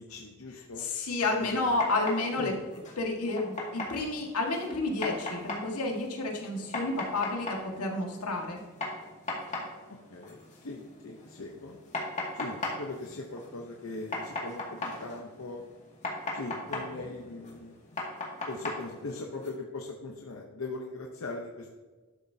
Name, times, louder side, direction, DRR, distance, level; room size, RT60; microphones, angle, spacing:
voice 1, 0.0-0.9 1.4-1.6 2.4-2.6 10.1-11.8 12.3-15.6 16.3-17.7 18.5-21.7, left 2 dB, 65° left, 1 dB, 0.8 m, -40 dB
voice 2, 0.8-2.5 3.0-8.6, left 2 dB, 85° left, 1 dB, 1.7 m, -30 dB
sound 1, 1.6-19.5, left 2 dB, 30° left, 2.1 m, -39 dB
12.0 x 7.1 x 2.8 m, 1.3 s
head